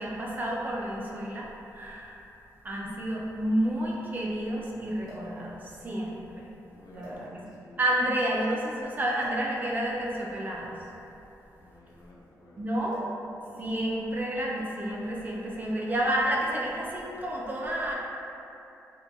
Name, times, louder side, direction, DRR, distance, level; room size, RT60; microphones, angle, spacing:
voice 1, 0.0-2.2 2.6-6.5 6.9-7.4 7.8-10.8 12.6-13.0 13.6-17.9, right 1 dB, 25° right, -3 dB, 0.3 m, -30 dB
sound 1, 5.0-5.4 6.3-6.4 7.0-7.7 9.2-9.5 10.6-12.3 12.9-13.3 13.5-13.8 14.6-14.9 15.9-16.2, left 1 dB, 85° right, 0.8 m, -47 dB
voice 2, 6.7-7.8 11.6-12.7 13.4-13.9, left 1 dB, 65° left, -4 dB, 0.4 m, -53 dB
2.7 x 2.2 x 2.5 m, 2.8 s
wide cardioid pair, 140°, 7 cm